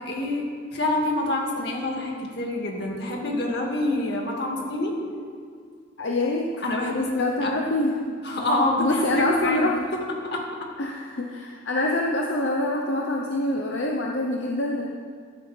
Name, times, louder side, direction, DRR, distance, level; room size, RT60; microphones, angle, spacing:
voice 1, 0.1-4.9 6.6-7.6 8.2-9.7 10.3-10.5, left 1 dB, 60° left, -1 dB, 2.1 m, -26 dB
voice 2, 6.0-8.2 8.8-9.8 10.8-14.9, left 1 dB, 75° left, 0 dB, 0.8 m, -26 dB
14.5 x 12.5 x 3.4 m, 2.1 s
head